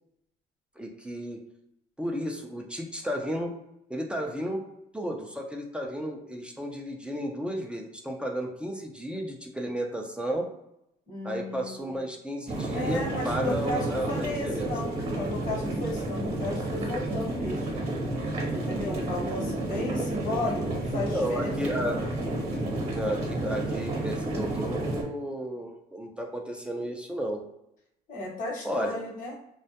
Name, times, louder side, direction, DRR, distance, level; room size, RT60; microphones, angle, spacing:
voice 1, 0.8-1.4 2.0-3.5 3.9-4.6 4.9-10.4 11.2-14.9 19.9-20.4 21.1-22.0 22.9-27.4 28.6-29.0, equal, 5° right, 0 dB, 0.4 m, -33 dB
voice 2, 11.1-12.0 12.7-17.8 18.5-21.5 21.8-21.9 28.1-29.4, left 2 dB, 50° left, -3 dB, 0.9 m, -34 dB
sound 1, 12.5-25.0, right 1 dB, 35° right, 0.9 m, -31 dB
2.2 x 2.0 x 2.7 m, 0.82 s
cardioid pair, 110°, 17 cm